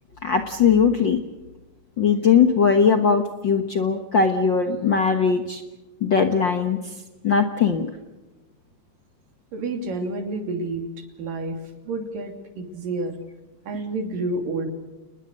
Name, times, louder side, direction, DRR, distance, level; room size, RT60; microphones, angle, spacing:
voice 1, 0.2-1.2 2.0-5.6 6.0-6.9 7.2-7.9, left 6 dB, 55° left, 7 dB, 1.3 m, -20 dB
voice 2, 9.5-11.6 11.8-13.2 13.7-14.7, right 2 dB, 85° right, 6 dB, 4.6 m, -29 dB
29.0 x 21.0 x 6.5 m, 1.1 s
omnidirectional pair, 3.8 m